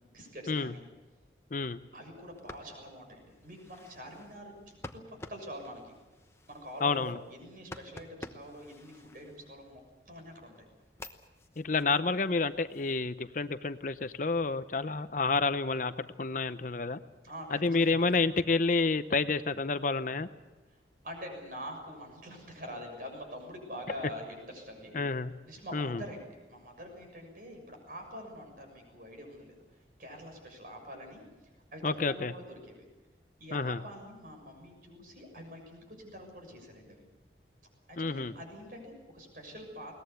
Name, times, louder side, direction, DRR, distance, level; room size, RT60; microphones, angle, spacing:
voice 1, 0.1-0.8 1.9-5.9 6.5-10.6 17.2-18.0 21.0-24.9 25.5-29.6 30.0-31.2 31.7-32.8 33.4-37.0 37.9-40.0, equal, 50° right, 3 dB, 6.8 m, -45 dB
sound 1, 2.2-9.9 10.4-13.0, left 2 dB, 15° left, 1.0 m, -51 dB
voice 2, 6.8-7.2 11.6-17.0 17.5-20.3 24.9-25.3 25.7-26.0 31.8-32.3 33.5-33.8 38.0-38.3, left 3 dB, 45° left, 12 dB, 0.7 m, -29 dB
22.0 x 19.0 x 8.3 m, 1.1 s
head